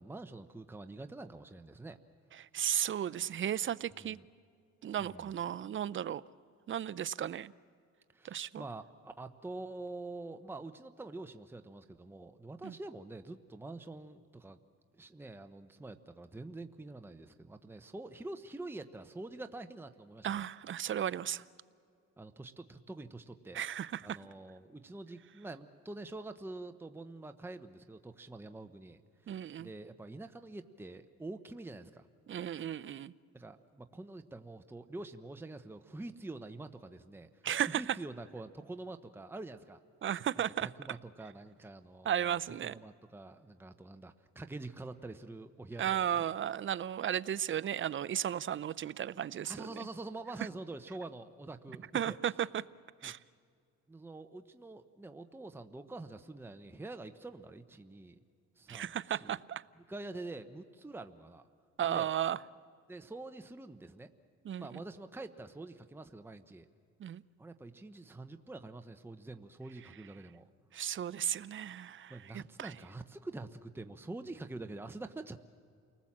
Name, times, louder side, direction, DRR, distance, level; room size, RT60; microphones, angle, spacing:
voice 1, 0.0-2.0 4.0-4.2 5.0-5.3 8.1-14.6 14.9-20.5 22.2-23.6 24.0-32.1 33.3-37.3 37.7-39.8 40.6-46.3 49.4-52.2 53.0-53.1 53.9-58.2 58.6-59.4 59.9-61.5 61.8-62.1 62.9-64.1 64.6-66.7 67.4-70.5 72.1-75.4, right 2 dB, 5° right, 8 dB, 0.9 m, -46 dB
voice 2, 2.4-4.2 4.8-6.2 6.7-7.5 8.2-8.6 12.6-12.7 20.2-21.4 23.5-24.2 29.3-29.7 32.3-33.1 37.4-37.8 40.0-40.7 42.0-42.8 45.8-49.9 51.9-52.6 53.0-53.2 58.7-59.6 61.8-62.4 64.4-64.8 67.0-67.2 70.7-72.7, right 10 dB, 40° right, 18 dB, 0.6 m, -35 dB
29.0 x 19.5 x 7.4 m, 2.3 s
cardioid pair, 90°, 30 cm